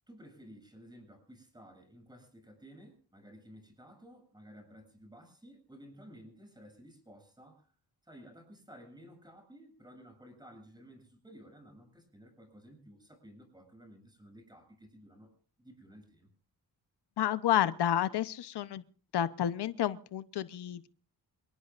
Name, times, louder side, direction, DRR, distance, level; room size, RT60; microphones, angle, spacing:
voice 1, 0.1-7.7 8.0-15.3 15.6-16.3, equal, 10° right, 5 dB, 8.0 m, -54 dB
voice 2, 17.2-18.8 19.1-20.9, left 11 dB, 85° left, 14 dB, 1.0 m, -30 dB
27.5 x 18.5 x 2.5 m, 0.42 s
wide cardioid pair, 130°, 39 cm